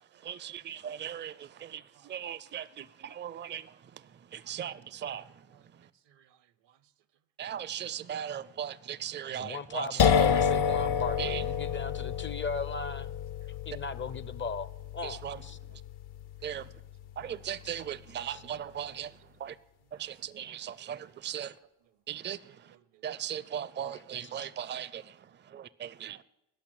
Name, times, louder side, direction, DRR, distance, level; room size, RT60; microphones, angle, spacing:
voice 1, 0.2-3.6 4.3-5.2 7.4-9.8 11.2-11.4 15.2-15.4 16.4-16.6 17.2-19.1 19.4-19.5 20.0-21.5 22.1-22.4 23.0-25.0 25.5-26.2, right 9 dB, 25° right, 0.4 m, -38 dB
voice 2, 4.3-5.6 6.1-6.4 6.7-6.8 13.4-13.6 17.2-17.3 18.3-18.4 19.0-19.3 19.9-20.1 20.4-21.4 22.4-23.0, right 11 dB, 70° right, 0.8 m, -64 dB
voice 3, 9.3-13.2 13.7-15.6 17.6-17.9 18.3-18.4 23.9-24.5, left 4 dB, 30° left, 0.5 m, -38 dB
sound 1, 10.0-17.6, left 7 dB, 65° left, 0.7 m, -30 dB
12.0 x 5.8 x 7.8 m
supercardioid pair, 60°, 43 cm